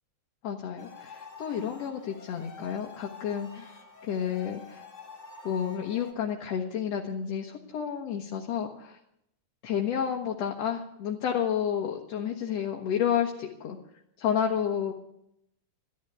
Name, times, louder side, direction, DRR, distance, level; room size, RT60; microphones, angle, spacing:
voice 1, 0.4-4.9 5.4-9.0 9.6-13.8 14.2-14.9, left 8 dB, 60° left, 1 dB, 2.2 m, -31 dB
sound 1, 0.8-6.1, left 4 dB, 30° left, 1.5 m, -48 dB
14.0 x 12.0 x 8.1 m, 0.78 s
omnidirectional pair, 3.6 m